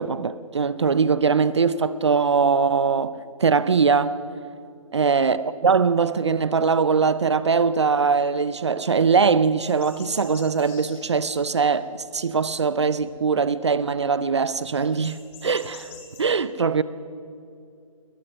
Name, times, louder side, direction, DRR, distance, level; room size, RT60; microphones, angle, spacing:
voice 1, 0.0-4.2 4.9-15.9 16.2-16.8, right 5 dB, 55° right, 0.7 m, -21 dB
sound 1, 9.6-12.2 12.5-13.2 14.1-14.2 14.4-14.5 14.7-16.2, left 6 dB, 25° left, 3.9 m, -47 dB
22.0 x 19.5 x 6.2 m
figure-of-eight pair, 140°, 18 cm